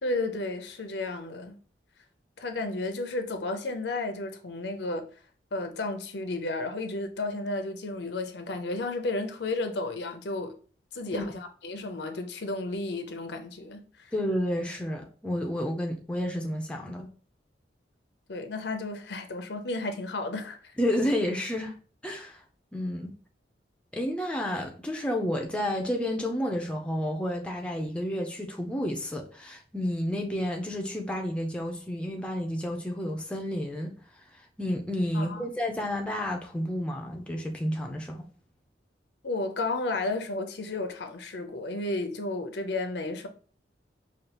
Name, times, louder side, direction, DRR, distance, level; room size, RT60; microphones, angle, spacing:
voice 1, 0.0-1.6 2.4-5.1 5.5-10.6 10.9-14.1 18.3-20.6 35.1-35.5 39.2-43.3, left 2 dB, 70° left, 0.6 m, -33 dB
voice 2, 14.1-17.1 20.8-21.8 22.0-22.4 22.7-23.1 23.9-33.9 34.6-38.3, left 1 dB, 5° left, 0.5 m, -30 dB
5.0 x 2.4 x 2.9 m
head